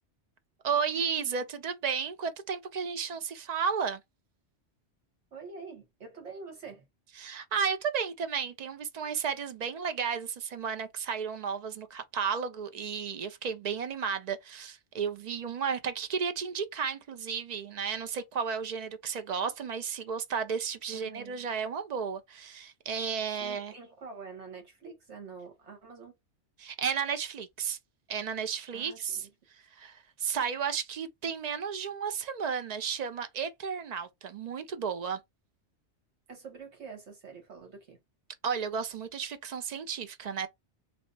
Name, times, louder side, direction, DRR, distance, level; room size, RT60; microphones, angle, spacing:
voice 1, 0.6-4.0 7.2-23.7 26.6-27.8 28.1-29.2 29.7-35.2 38.4-40.5, right 6 dB, 55° right, 0.4 m, -33 dB
voice 2, 5.3-6.9 20.9-21.5 23.4-26.1 28.7-29.3 36.3-38.0, right 5 dB, 70° right, 1.6 m, -46 dB
3.3 x 2.1 x 3.9 m
omnidirectional pair, 1.2 m